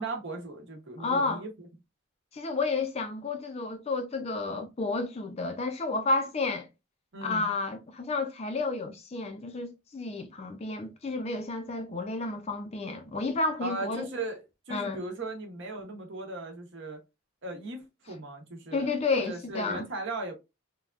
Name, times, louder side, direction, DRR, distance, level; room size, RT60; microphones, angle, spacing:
voice 1, 0.0-1.7 7.1-7.5 13.6-17.0 17.4-20.3, right 2 dB, 55° right, 0.8 m, -38 dB
voice 2, 1.0-1.4 2.3-6.7 7.2-14.1 14.7-15.0 18.7-19.9, left 3 dB, 30° left, 0.4 m, -31 dB
3.3 x 2.2 x 2.3 m
head